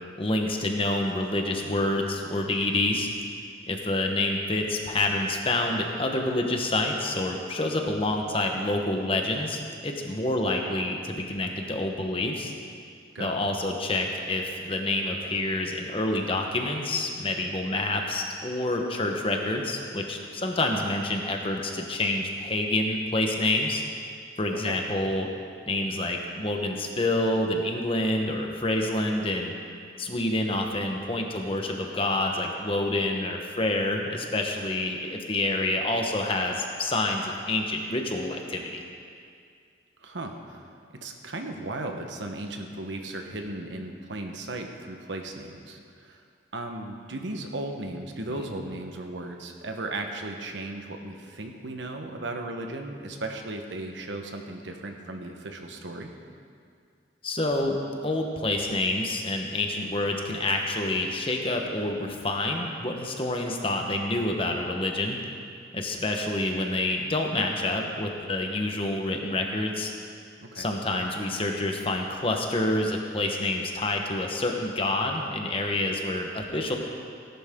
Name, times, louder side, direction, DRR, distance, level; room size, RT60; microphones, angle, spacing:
voice 1, 0.2-3.1 3.7-12.5 13.2-23.8 24.4-25.3 25.7-29.5 30.0-38.8 48.3-48.5 57.2-57.8 58.0-65.2 65.7-69.9 70.5-76.7, left 2 dB, 30° left, 2 dB, 1.2 m, -27 dB
voice 2, 13.1-13.5 24.5-24.8 40.0-46.2 46.5-56.1 70.4-70.7, right 2 dB, 85° right, 4 dB, 1.2 m, -36 dB
17.5 x 11.5 x 3.8 m, 2.3 s
head